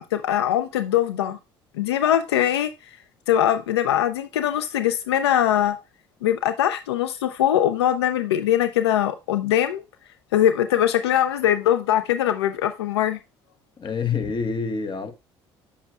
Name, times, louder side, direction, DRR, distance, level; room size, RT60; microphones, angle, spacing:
voice 1, 0.0-1.4 1.8-2.7 3.3-5.8 6.2-9.8 10.3-13.2, left 11 dB, 85° left, 0.4 m, -22 dB
voice 2, 13.8-15.1, left 5 dB, 35° left, 1.2 m, -26 dB
8.5 x 7.2 x 2.4 m
hypercardioid pair, 55°, 13 cm